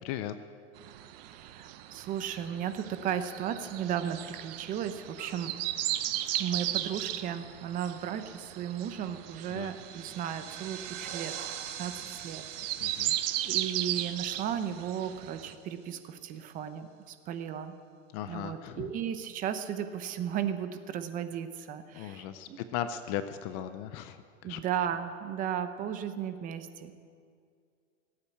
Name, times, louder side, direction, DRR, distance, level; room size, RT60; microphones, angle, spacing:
voice 1, 0.0-0.4 9.5-9.7 12.8-13.2 18.1-18.9 21.9-24.6, left 10 dB, 30° left, 11 dB, 0.4 m, -37 dB
sound 1, 0.8-15.5, right 13 dB, 50° right, 0.8 m, -36 dB
voice 2, 1.2-5.5 6.3-11.3 11.8-12.4 12.7-13.2 13.4-17.7 18.3-22.6 24.4-27.0, right 9 dB, 25° right, 10 dB, 0.6 m, -35 dB
sound 2, 8.9-15.7, right 10 dB, 75° right, 1.4 m, -44 dB
17.5 x 8.7 x 8.4 m, 2.2 s
supercardioid pair, 150°, 37 cm